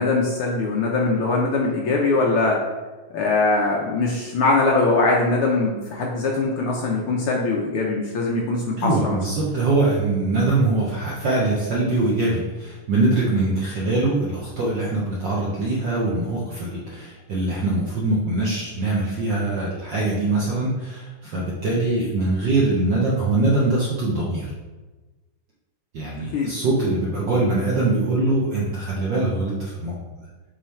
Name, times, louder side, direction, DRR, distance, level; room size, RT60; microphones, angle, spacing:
voice 1, 0.0-2.6 3.1-9.2 26.3-26.5, left 3 dB, 85° left, -2 dB, 1.2 m, -21 dB
voice 2, 8.8-24.5 25.9-30.0, right 2 dB, 75° right, -5 dB, 1.0 m, -23 dB
7.4 x 3.3 x 4.4 m, 1.2 s
omnidirectional pair, 3.5 m